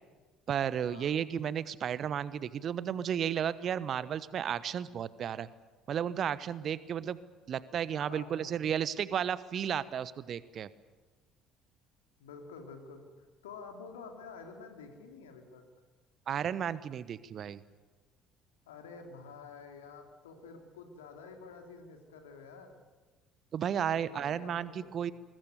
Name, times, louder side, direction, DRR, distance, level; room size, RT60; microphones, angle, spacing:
voice 1, 0.5-5.5 5.9-7.2 7.5-10.7 16.3-17.6 23.5-25.1, right 9 dB, 45° right, 17 dB, 1.0 m, -33 dB
voice 2, 7.9-8.6 12.2-15.6 18.7-22.7 23.9-25.1, left 4 dB, 75° left, 4 dB, 3.1 m, -49 dB
22.0 x 20.0 x 9.3 m, 1.3 s
figure-of-eight pair, 55°, 0 cm